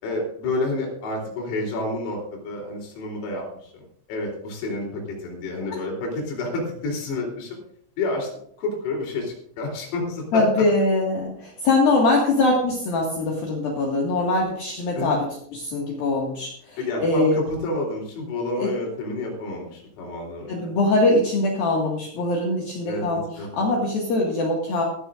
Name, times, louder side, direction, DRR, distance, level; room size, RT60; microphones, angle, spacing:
voice 1, 0.0-7.6 8.0-8.3 8.6-10.4 15.0-15.2 16.8-20.7 22.9-23.5, left 2 dB, 90° left, -1 dB, 6.3 m, -29 dB
voice 2, 10.3-17.4 18.6-18.7 20.5-24.8, left 2 dB, 55° left, -2 dB, 3.2 m, -22 dB
16.5 x 15.5 x 2.5 m, 0.67 s
omnidirectional pair, 5.9 m